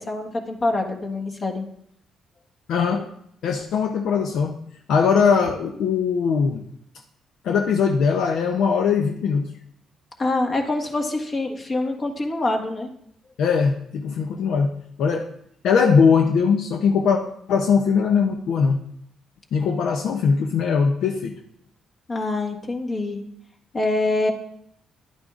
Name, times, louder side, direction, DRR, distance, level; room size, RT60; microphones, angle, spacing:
voice 1, 0.0-1.6 10.2-12.9 22.1-23.2 23.7-24.3, left 2 dB, 40° left, 1 dB, 1.5 m, -25 dB
voice 2, 2.7-3.1 3.4-4.6 4.9-6.6 7.4-9.5 13.4-15.3 15.6-17.2 17.5-18.8 19.5-21.3, left 6 dB, 75° left, 4 dB, 0.6 m, -20 dB
11.0 x 8.8 x 2.5 m, 0.71 s
cardioid pair, 90°, 0 cm